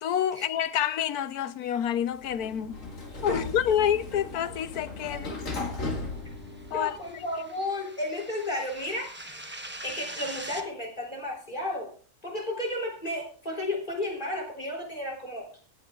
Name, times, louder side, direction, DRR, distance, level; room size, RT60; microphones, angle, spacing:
voice 1, 0.0-2.8 3.2-5.4 6.7-7.2, left 9 dB, 85° left, 1.3 m, -28 dB
Sliding door, 2.0-7.2, left 2 dB, 55° left, 2.3 m, -37 dB
sound 1, 6.2-10.6, right 1 dB, 10° right, 0.9 m, -43 dB
voice 2, 6.7-9.1 9.8-11.9 12.2-15.6, left 1 dB, 30° left, 3.8 m, -33 dB
25.5 x 8.5 x 2.4 m
omnidirectional pair, 1.6 m